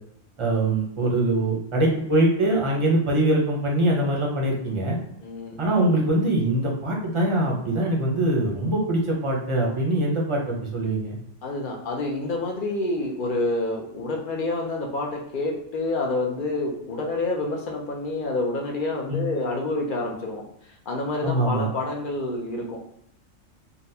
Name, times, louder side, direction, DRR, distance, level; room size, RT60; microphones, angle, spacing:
voice 1, 0.4-5.0 5.6-11.2 19.1-19.3 21.2-21.7, right 1 dB, 30° right, -2 dB, 0.6 m, -23 dB
voice 2, 5.2-5.6 11.4-20.4 20.9-22.8, left 2 dB, 50° left, 0 dB, 0.6 m, -28 dB
3.9 x 2.2 x 2.7 m, 0.76 s
omnidirectional pair, 1.4 m